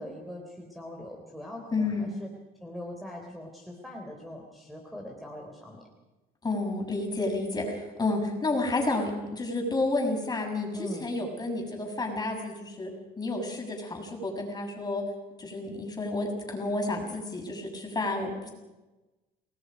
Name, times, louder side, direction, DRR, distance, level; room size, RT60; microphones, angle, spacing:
voice 1, 0.0-2.3 2.6-5.8 10.7-11.1, left 1 dB, ahead, -1 dB, 3.6 m, -41 dB
voice 2, 1.7-2.1 6.4-15.0 15.4-18.5, left 2 dB, 25° left, 2 dB, 6.7 m, -30 dB
29.5 x 19.5 x 5.2 m, 1.1 s
cardioid pair, 110°, 17 cm